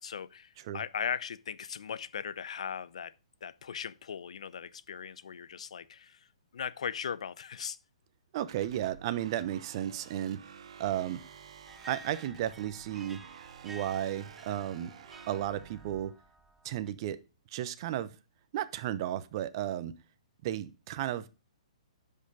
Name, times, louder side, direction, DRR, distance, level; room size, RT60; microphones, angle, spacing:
voice 1, 0.0-3.1 3.4-7.8, left 7 dB, 70° left, 0.7 m, -38 dB
voice 2, 8.3-10.4 10.8-11.2 11.9-13.2 13.6-14.9 15.3-16.1 16.6-17.2 17.5-18.1 18.5-19.9 20.4-21.3, right 12 dB, 45° right, 0.9 m, -33 dB
sound 1, 8.5-16.0, right 7 dB, 60° right, 1.2 m, -52 dB
sound 2, 11.7-16.9, right 2 dB, 5° right, 0.9 m, -52 dB
10.0 x 5.6 x 5.0 m
hypercardioid pair, 135°, 4 cm